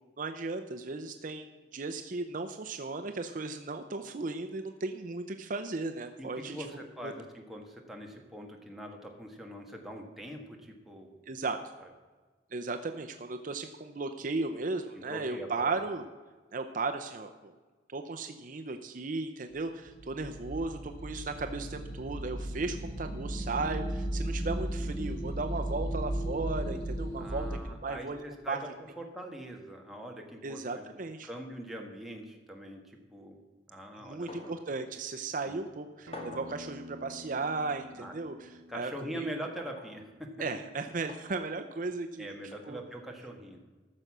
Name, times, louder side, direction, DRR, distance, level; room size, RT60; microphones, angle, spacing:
voice 1, 0.2-6.6 7.0-7.1 11.3-11.6 12.5-16.0 16.5-17.5 17.9-28.6 30.4-31.3 34.0-39.3 40.4-42.3 42.6-42.8, right 3 dB, 45° right, 6 dB, 0.6 m, -36 dB
voice 2, 6.2-11.2 14.9-15.8 27.2-28.6 29.0-30.8 31.2-33.4 33.7-34.6 35.5-35.6 37.9-38.1 38.7-40.3 42.2-43.6, right 1 dB, ahead, 0 dB, 1.5 m, -43 dB
sound 1, 19.8-27.6, right 1 dB, 50° left, 2.1 m, -35 dB
sound 2, 34.3-34.6 35.0-35.1 36.1-36.6 37.7-37.9 39.6-39.9 41.1-41.3 42.5-42.7, left 2 dB, 35° left, 1.9 m, -45 dB
Acoustic guitar, 36.1-41.3, left 1 dB, 75° right, 1.0 m, -51 dB
14.0 x 6.7 x 6.1 m, 1.3 s
head